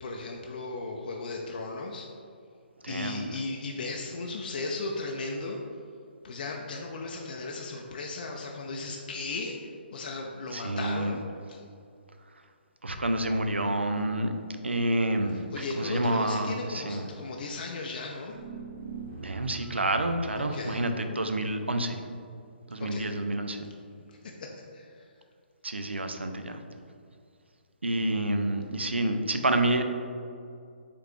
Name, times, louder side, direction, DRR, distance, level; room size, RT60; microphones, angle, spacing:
voice 1, 0.0-2.1 2.9-5.6 6.2-11.2 11.5-11.6 15.5-18.4 20.4-20.8 22.8-23.1 24.1-25.1, left 3 dB, 50° left, 0 dB, 0.4 m, -36 dB
voice 2, 2.8-3.2 10.5-11.1 12.8-14.3 14.6-17.1 19.2-22.0 22.7-23.6 25.6-26.6 27.8-29.8, right 1 dB, 85° right, 6 dB, 0.4 m, -28 dB
sound 1, 18.3-20.1, right 5 dB, 35° right, 1.2 m, -40 dB
4.7 x 3.4 x 3.1 m, 2.4 s
figure-of-eight pair, 135°, 6 cm